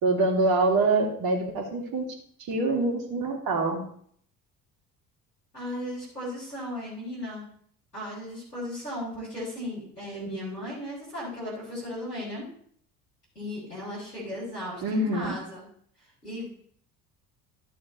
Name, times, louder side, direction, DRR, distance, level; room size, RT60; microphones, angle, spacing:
voice 1, 0.0-2.1 2.5-3.9 10.2-10.3 14.8-15.3, right 2 dB, 50° right, 2 dB, 2.6 m, -25 dB
voice 2, 5.5-7.5 7.9-12.5 13.4-15.6 16.2-16.5, left 1 dB, 90° left, -9 dB, 3.6 m, -36 dB
12.5 x 6.7 x 4.1 m, 0.62 s
figure-of-eight pair, 55°, 47 cm